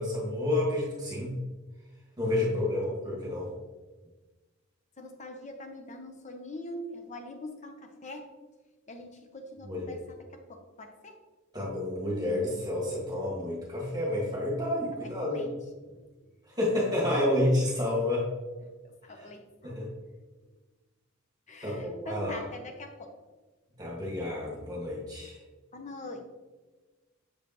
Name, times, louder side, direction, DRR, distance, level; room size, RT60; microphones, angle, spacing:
voice 1, 0.0-1.3 2.2-3.5 9.6-9.8 11.5-15.4 16.6-18.3 19.6-19.9 21.6-22.4 23.8-25.4, left 1 dB, 20° right, -5 dB, 1.7 m, -29 dB
voice 2, 2.3-2.7 5.0-8.3 8.9-11.2 15.2-16.2 18.6-19.8 21.5-23.2 25.7-26.3, left 1 dB, 35° left, 5 dB, 0.7 m, -43 dB
7.0 x 4.9 x 3.0 m, 1.3 s
head